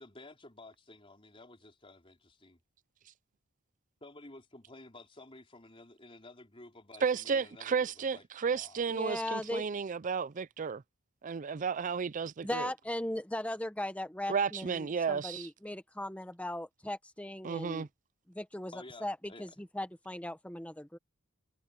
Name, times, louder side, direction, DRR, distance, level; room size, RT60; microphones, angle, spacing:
voice 1, 0.0-2.6 4.0-8.2 8.5-8.9 9.2-9.5 18.7-19.4, left 2 dB, 25° left, 4.3 m, -53 dB
voice 2, 7.0-10.8 11.2-12.7 14.3-15.5 17.4-17.9, right 6 dB, 35° right, 0.4 m, -33 dB
voice 3, 8.9-9.7 12.4-17.9 18.3-18.7 19.0-19.5 19.7-21.0, left 1 dB, 5° left, 0.9 m, -38 dB
head